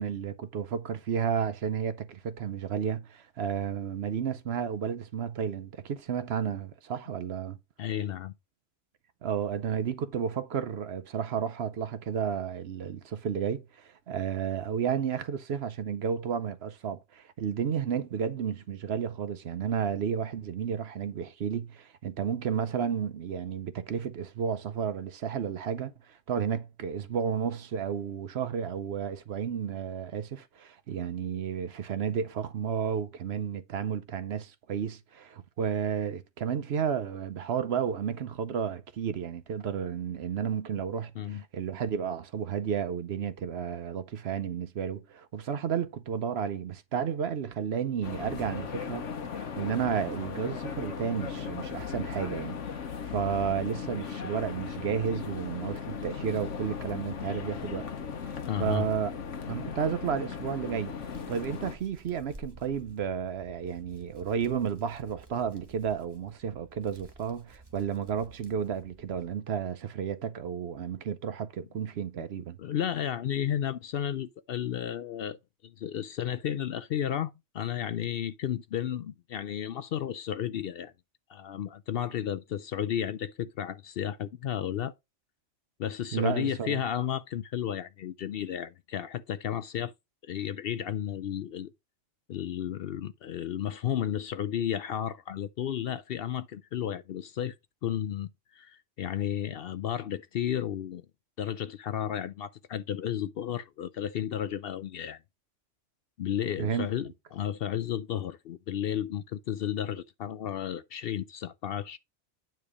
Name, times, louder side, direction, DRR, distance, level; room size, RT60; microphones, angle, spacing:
voice 1, 0.0-7.6 9.2-52.6 53.0-57.9 58.2-59.1 59.5-61.0 61.3-72.6 86.1-86.8 106.6-106.9, right 7 dB, 65° right, 0.9 m, -32 dB
voice 2, 7.8-8.3 41.2-41.4 58.5-58.9 72.6-75.4 75.6-80.9 81.3-84.9 85.8-89.9 90.3-91.7 92.3-97.6 97.8-101.1 101.4-105.2 106.2-112.0, left 10 dB, 60° left, 0.7 m, -33 dB
sound 1, 48.0-61.7, left 6 dB, 85° left, 1.3 m, -37 dB
Hands, 60.9-69.3, right 2 dB, 20° right, 1.2 m, -53 dB
9.3 x 3.3 x 4.8 m
omnidirectional pair, 1.2 m